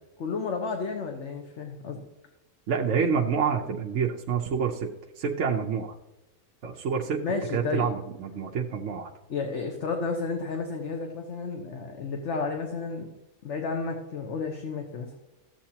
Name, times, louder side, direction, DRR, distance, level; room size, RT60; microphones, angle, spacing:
voice 1, 0.2-2.0 7.2-7.9 9.3-13.1 13.4-15.1, left 4 dB, 60° left, 3 dB, 1.3 m, -32 dB
voice 2, 2.7-4.9 5.2-5.9 6.6-7.2 7.5-9.1, right 6 dB, 60° right, 0 dB, 1.1 m, -27 dB
14.0 x 7.8 x 2.8 m, 1.0 s
omnidirectional pair, 1.5 m